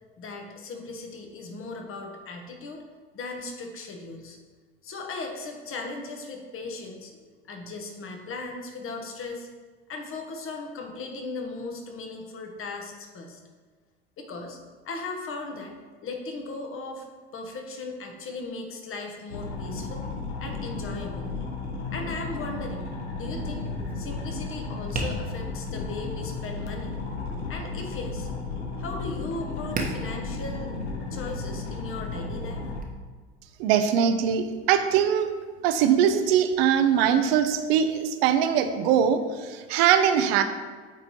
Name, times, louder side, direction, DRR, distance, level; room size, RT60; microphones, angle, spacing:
voice 1, 0.2-2.9 3.1-4.4 4.8-9.5 9.9-13.4 14.2-15.8 16.0-17.1 17.3-20.1 20.4-21.4 21.9-22.9 23.2-23.6 23.9-27.0 27.5-28.3 28.8-30.7 31.1-32.6, left 3 dB, 40° left, 3 dB, 1.3 m, -37 dB
sound 1, 19.3-32.8, left 3 dB, 80° left, 1.1 m, -34 dB
Tap, 23.1-32.8, right 2 dB, 25° right, 1.1 m, -40 dB
voice 2, 33.6-35.3 35.6-40.4, right 8 dB, 65° right, 9 dB, 0.7 m, -22 dB
8.8 x 4.1 x 3.0 m, 1.5 s
hypercardioid pair, 75°, 33 cm